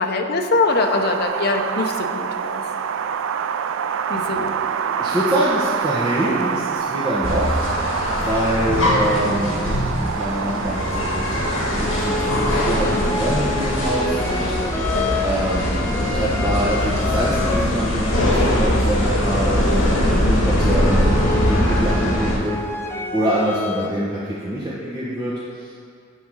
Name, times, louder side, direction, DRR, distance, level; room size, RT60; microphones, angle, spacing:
voice 1, 0.0-2.6 4.1-4.5 14.9-15.1, left 3 dB, 50° left, 4 dB, 0.6 m, -22 dB
Wind, 0.7-14.7, right 7 dB, 70° right, 0.3 m, -27 dB
voice 2, 4.1-7.6 8.2-11.4 11.7-14.5 15.2-15.7 16.1-22.6 23.1-25.7, right 1 dB, 20° right, -9 dB, 1.0 m, -25 dB
sound 1, 7.2-22.4, left 1 dB, 70° left, 1.7 m, -21 dB
sound 2, 10.0-10.1 10.6-11.3 11.8-17.8 18.1-19.6 20.1-23.9, left 3 dB, 10° left, 0.4 m, -29 dB
10.5 x 3.6 x 6.3 m, 2.3 s
head